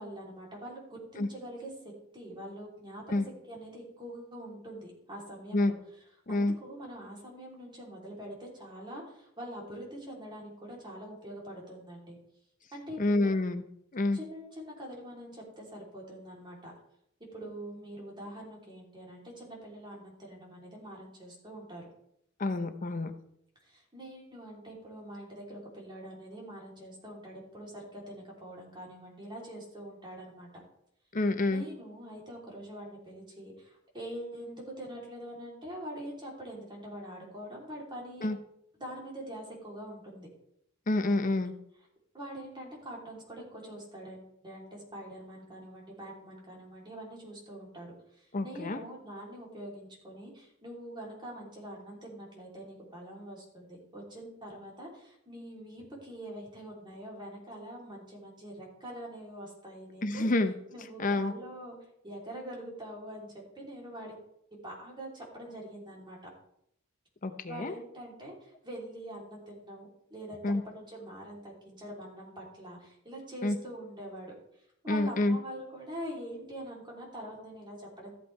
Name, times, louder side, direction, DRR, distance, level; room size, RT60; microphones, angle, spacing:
voice 1, 0.0-3.0 3.5-5.7 6.3-12.2 12.7-13.3 14.1-16.7 17.3-21.9 23.6-30.5 31.5-38.3 38.8-40.3 42.1-60.2 60.7-61.8 62.0-64.1 64.5-66.2 67.5-74.3 74.8-78.1, right 1 dB, 20° right, -3 dB, 3.2 m, -44 dB
voice 2, 13.0-13.6 13.9-14.2 22.4-23.1 31.1-31.6 38.2-38.4 40.9-41.5 48.3-48.8 60.0-60.5 61.0-61.3 67.2-67.7 70.4-70.6 73.4-73.6 74.9-75.4, left 2 dB, 40° left, 9 dB, 0.7 m, -28 dB
13.5 x 8.3 x 3.3 m, 0.74 s
head